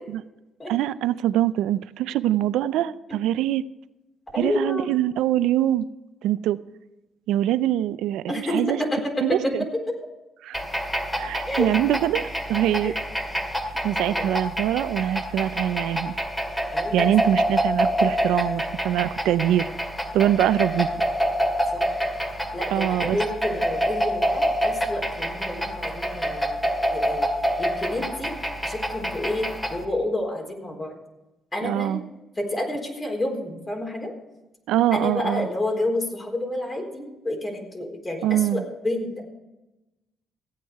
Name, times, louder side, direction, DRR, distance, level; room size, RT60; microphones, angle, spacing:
voice 1, 0.7-3.6 4.4-5.9 6.2-6.6 7.3-8.8 9.2-9.6 10.4-10.6 11.1-12.9 13.8-16.1 16.9-19.7 20.1-20.9 22.7-23.2 31.6-32.0 34.7-35.5 38.2-38.6, right 12 dB, 90° right, 15 dB, 0.5 m, -23 dB
voice 2, 4.3-4.9 8.3-9.9 11.5-11.7 12.8-13.0 14.1-14.2 16.7-17.1 21.7-21.9 22.5-27.3 27.6-28.3 28.6-30.9 31.5-32.0 32.4-34.1 34.9-38.2 38.5-39.3, left 1 dB, 25° left, 1 dB, 4.0 m, -29 dB
sound 1, 10.5-29.8, equal, 5° left, 2.2 m, -27 dB
16.0 x 9.3 x 4.7 m, 1.0 s
cardioid pair, 90°, 0 cm